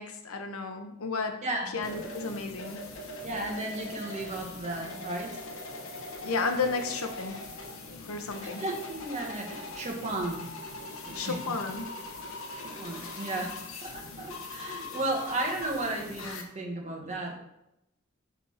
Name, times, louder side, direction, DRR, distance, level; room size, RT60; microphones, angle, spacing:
voice 1, 0.0-1.4 1.7-2.8 6.2-7.4 8.1-8.6 11.1-11.8, left 4 dB, 90° left, 6 dB, 0.8 m, -32 dB
voice 2, 1.4-1.8 3.2-5.4 8.4-10.5 11.1-11.4 12.5-13.6 13.8-17.3, right 2 dB, 35° right, 1 dB, 1.4 m, -34 dB
sound 1, 1.8-16.4, left 2 dB, 75° left, 1.2 m, -41 dB
6.0 x 4.3 x 5.5 m, 0.84 s
head